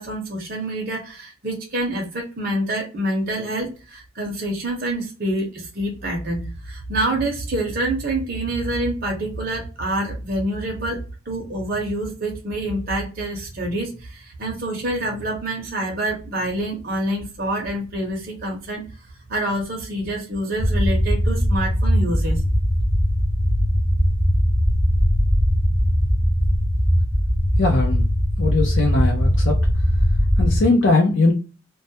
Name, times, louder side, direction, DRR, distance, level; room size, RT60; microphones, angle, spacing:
voice 1, 0.0-18.9 19.3-22.4, right 1 dB, 45° right, 0 dB, 0.6 m, -26 dB
sound 1, 20.6-30.6, equal, 15° left, 0.7 m, -19 dB
voice 2, 27.6-28.0 28.4-29.5 30.4-31.3, left 3 dB, 60° left, 1 dB, 0.5 m, -19 dB
2.2 x 2.1 x 2.7 m, 0.34 s
head